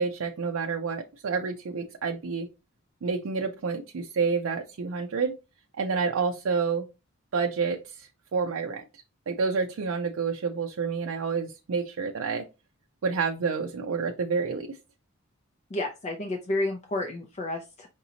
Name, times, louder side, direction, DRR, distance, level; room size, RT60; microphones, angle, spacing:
voice 1, 0.0-2.5 3.0-5.3 5.8-6.8 7.3-8.8 9.3-12.5 13.0-14.8, right 5 dB, 75° right, 3 dB, 0.4 m, -29 dB
voice 2, 15.7-17.9, left 2 dB, 35° left, 3 dB, 0.5 m, -31 dB
5.0 x 2.7 x 2.8 m, 0.28 s
head